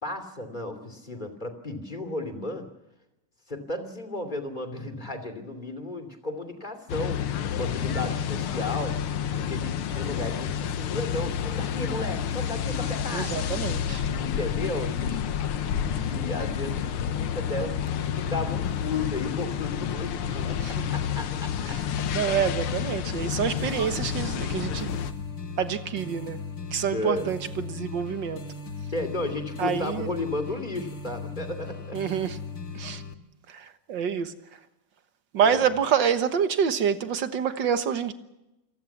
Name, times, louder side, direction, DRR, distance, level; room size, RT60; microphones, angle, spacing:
voice 1, 0.0-2.7 3.5-7.2 7.5-9.0 9.4-13.4 14.2-15.2 15.5-22.1 26.9-27.3 28.9-32.0 35.4-35.6, left 2 dB, 20° left, 3.0 m, -34 dB
sound 1, 6.9-25.1, left 8 dB, 85° left, 2.0 m, -29 dB
voice 2, 13.1-14.0 20.6-20.9 21.7-21.8 22.1-25.1 25.6-26.4 26.7-28.4 29.6-30.1 31.9-32.4 32.7-33.0 33.5-34.3 35.3-38.1, right 7 dB, 60° right, 1.9 m, -27 dB
sound 2, 23.6-33.1, left 4 dB, 45° left, 1.9 m, -38 dB
27.5 x 19.0 x 7.3 m
omnidirectional pair, 2.4 m